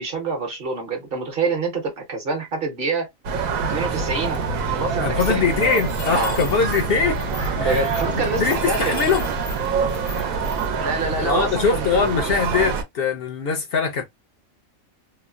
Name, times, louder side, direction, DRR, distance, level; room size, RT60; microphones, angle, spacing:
voice 1, 0.0-3.1 3.7-5.4 6.1-6.4 7.6-9.0 10.7-11.9, right 3 dB, 45° right, 1.0 m, -26 dB
sound 1, 3.2-12.8, right 5 dB, 80° right, 1.1 m, -25 dB
voice 2, 5.0-7.2 7.6-7.9 8.4-9.3 11.2-14.0, left 5 dB, 60° left, 0.6 m, -22 dB
Mechanisms, 5.2-10.7, left 2 dB, 75° left, 1.1 m, -35 dB
3.0 x 2.0 x 2.4 m
omnidirectional pair, 1.5 m